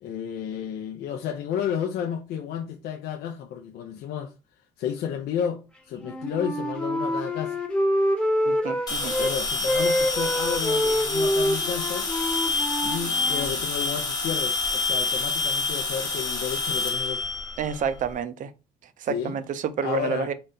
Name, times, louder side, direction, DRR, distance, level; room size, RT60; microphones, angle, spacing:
voice 1, 0.0-4.3 4.8-7.6 9.2-12.1 12.8-17.2 19.1-19.4 19.8-20.3, left 8 dB, 70° left, 0.5 m, -32 dB
Wind instrument woodwind instrument, 5.9-9.3 9.6-13.5, equal, 5° left, 0.8 m, -26 dB
voice 2, 8.5-9.1 17.6-18.5 19.0-20.3, right 7 dB, 50° right, 0.5 m, -29 dB
sound 1, 8.9-18.1, left 3 dB, 20° left, 1.1 m, -28 dB
3.9 x 2.2 x 3.8 m
cardioid pair, 110°, 17 cm